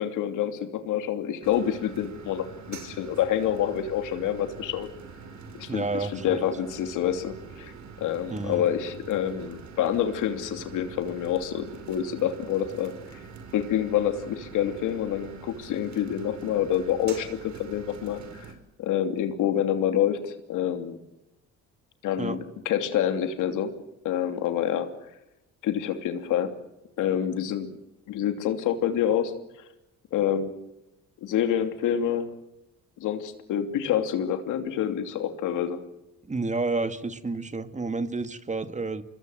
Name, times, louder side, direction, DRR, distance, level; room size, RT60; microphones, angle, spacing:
voice 1, 0.0-4.9 5.5-5.8 6.1-7.7 8.0-13.2 13.5-18.5 18.8-21.0 22.0-23.7 24.0-24.9 25.6-26.5 27.0-27.7 28.1-29.3 30.1-30.5 31.2-32.3 33.0-35.8, left 10 dB, 90° left, 7 dB, 2.9 m, -27 dB
sound 1, 1.4-18.5, right 5 dB, 65° right, 5.1 m, -45 dB
voice 2, 5.7-6.4 8.3-8.6 22.2-22.4 36.2-39.0, right 3 dB, 25° right, 10 dB, 2.1 m, -30 dB
26.0 x 21.0 x 8.0 m, 0.90 s
cardioid pair, 90°, 30 cm